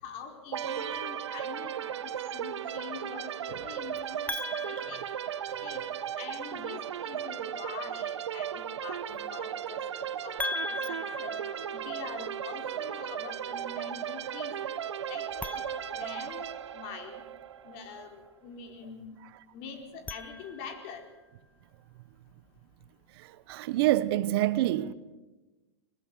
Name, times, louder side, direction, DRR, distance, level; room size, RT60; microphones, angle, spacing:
voice 1, 0.0-4.4 4.6-5.0 5.6-5.8 6.2-11.4 11.7-14.6 15.1-15.6 15.9-17.2 17.6-19.1 19.5-21.0, left 6 dB, 50° left, 4.6 m, -44 dB
sound 1, 0.5-18.1, right 9 dB, 85° right, 1.3 m, -36 dB
sound 2, 4.3-6.0 10.4-12.4 15.3-16.9 19.8-21.0, left 3 dB, 10° left, 0.7 m, -40 dB
voice 2, 23.2-24.9, right 15 dB, 60° right, 1.2 m, -27 dB
22.5 x 21.0 x 6.4 m
hypercardioid pair, 125°, 14 cm